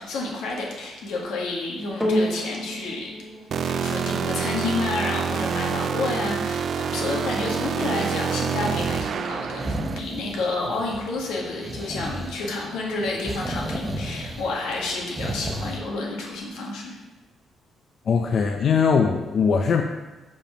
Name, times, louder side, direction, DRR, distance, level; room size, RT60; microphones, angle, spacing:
voice 1, 0.0-3.1 3.6-17.0, left 3 dB, 90° left, -2 dB, 1.8 m, -30 dB
sound 1, 2.0-10.6 11.3-11.4, equal, 10° left, 1.7 m, -34 dB
sound 2, 3.5-10.0, right 7 dB, 60° right, 0.3 m, -27 dB
sound 3, 8.6-15.8, right 1 dB, 15° right, 0.8 m, -34 dB
voice 2, 18.1-19.8, left 6 dB, 55° left, 3 dB, 0.5 m, -20 dB
5.4 x 5.2 x 5.1 m, 1.2 s
cardioid pair, 90°, 0 cm